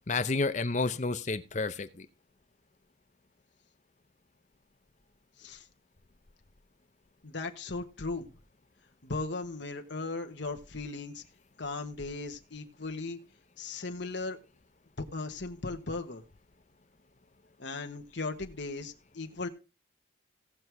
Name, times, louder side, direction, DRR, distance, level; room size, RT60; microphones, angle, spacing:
voice 1, 0.1-2.1, left 3 dB, 40° left, 11 dB, 0.7 m, -30 dB
voice 2, 7.2-8.4 9.0-11.2 11.6-13.2 13.6-14.4 15.0-16.2 17.6-19.5, left 3 dB, 65° left, 5 dB, 1.4 m, -37 dB
17.5 x 6.2 x 3.4 m, 0.31 s
head